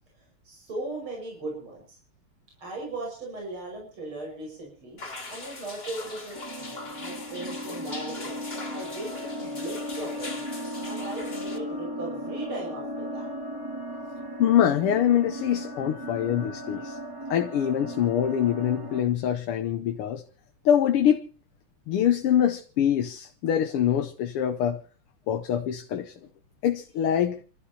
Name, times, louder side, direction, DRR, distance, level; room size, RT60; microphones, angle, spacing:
voice 1, 0.4-2.0 2.6-5.0 5.3-8.4 8.7-10.5 10.8-13.3, right 2 dB, 70° right, 6.6 m, -38 dB
sound 1, 5.0-11.6, left 3 dB, 25° left, 2.6 m, -41 dB
sound 2, 6.3-19.0, equal, 10° right, 2.2 m, -36 dB
voice 2, 14.4-17.0 17.3-20.2 20.7-21.2 21.9-24.8 25.3-26.1 26.6-27.4, left 10 dB, 85° left, 1.9 m, -24 dB
29.5 x 13.0 x 2.8 m
omnidirectional pair, 2.4 m